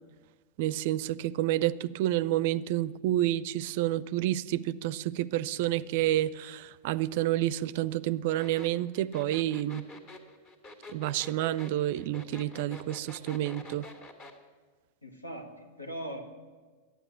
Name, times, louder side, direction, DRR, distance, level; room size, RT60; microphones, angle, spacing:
voice 1, 0.6-9.8 10.9-13.9, right 14 dB, 50° right, 0.4 m, -29 dB
sound 1, 8.4-14.4, left 2 dB, 35° left, 2.0 m, -47 dB
voice 2, 15.0-16.2, right 1 dB, 85° left, 1.7 m, -40 dB
12.0 x 9.1 x 9.2 m
figure-of-eight pair, 90°, 0 cm